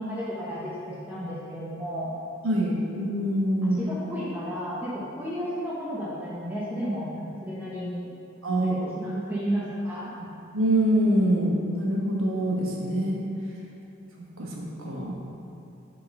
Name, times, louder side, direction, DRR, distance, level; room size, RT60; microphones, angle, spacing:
voice 1, 0.0-2.2 3.6-8.1 8.5-10.1, equal, 10° right, -8 dB, 0.8 m, -33 dB
voice 2, 2.4-3.8 8.4-8.8 10.5-13.2 14.4-15.1, right 1 dB, 90° right, -2 dB, 1.2 m, -25 dB
7.5 x 3.8 x 5.2 m, 2.8 s
head